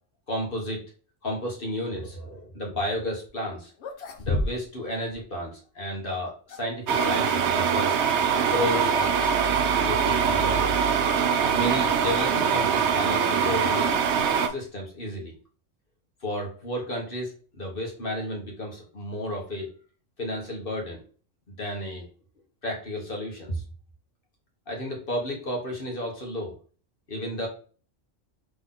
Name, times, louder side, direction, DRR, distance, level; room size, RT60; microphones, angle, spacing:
voice 1, 0.3-0.8 1.2-3.7 4.2-8.0 8.5-9.1 9.8-10.9 11.5-13.9 14.5-15.4 16.2-19.7 20.2-21.0 21.5-22.1 22.6-23.6 24.7-26.6 27.1-27.5, left 1 dB, 45° left, 0 dB, 1.4 m, -32 dB
sound 1, 3.2-3.3 3.7-4.9 5.1-5.2 6.1-6.8 8.6-8.9 9.2-9.5 9.8-9.9 10.7-10.8 12.6-14.7, left 2 dB, 60° left, 0.9 m, -34 dB
sound 2, 6.9-14.5, right 7 dB, 65° right, 0.8 m, -23 dB
3.9 x 3.4 x 3.7 m, 0.41 s
omnidirectional pair, 1.3 m